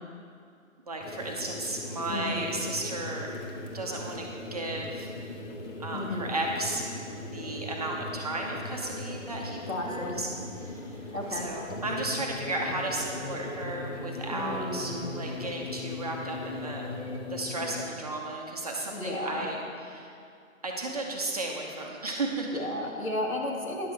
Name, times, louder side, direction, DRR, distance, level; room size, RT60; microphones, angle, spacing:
voice 1, 0.9-3.3 3.7-5.1 5.8-6.8 7.3-10.3 10.6-10.9 11.3-16.9 17.3-19.6 19.9-20.1 20.6-22.6, right 2 dB, 30° right, 0 dB, 0.7 m, -34 dB
sound 1, 1.0-17.9, left 2 dB, 60° left, 1.3 m, -39 dB
voice 2, 2.1-2.5 5.9-6.3 9.5-10.2 11.1-11.5 14.3-15.1 18.9-19.5 22.5-23.9, left 1 dB, 75° left, 0 dB, 1.8 m, -33 dB
10.5 x 6.6 x 4.5 m, 2.4 s
figure-of-eight pair, 150°, 41 cm